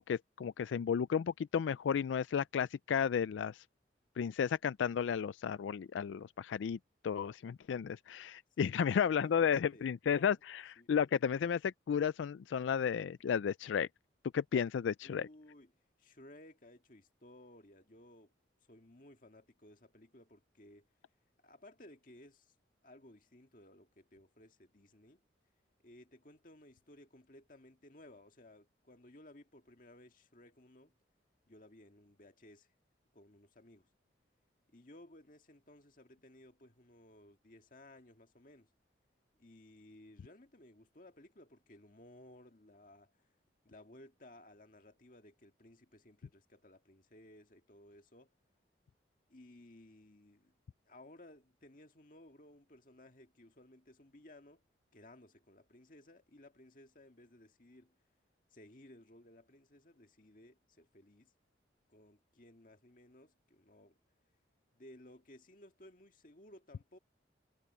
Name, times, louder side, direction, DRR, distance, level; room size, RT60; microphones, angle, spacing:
voice 1, 0.0-3.6 4.2-6.8 7.0-10.6 10.9-13.9 14.3-15.3, left 7 dB, 90° left, 0.3 m, -33 dB
voice 2, 8.6-10.4 10.8-10.9 15.0-15.7 16.0-18.3 18.7-20.9 21.4-22.5 22.8-25.2 25.8-30.9 31.5-32.7 33.1-33.9 34.7-38.7 39.4-43.2 43.6-48.3 49.3-50.5 50.9-54.6 54.9-58.0 58.5-61.3 61.9-64.0 64.7-67.0, left 1 dB, 45° left, 1.9 m, -58 dB
head